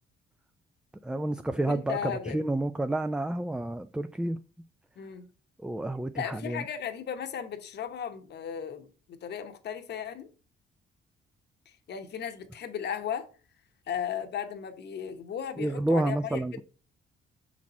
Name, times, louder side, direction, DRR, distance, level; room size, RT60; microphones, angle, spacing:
voice 1, 1.0-4.4 5.6-6.6 15.6-16.6, right 1 dB, 5° right, 0.3 m, -29 dB
voice 2, 1.7-2.4 5.0-5.3 6.1-10.3 11.7-13.3 13.9-16.6, left 8 dB, 60° left, 1.0 m, -36 dB
6.1 x 4.1 x 4.2 m
cardioid pair, 90°, 20 cm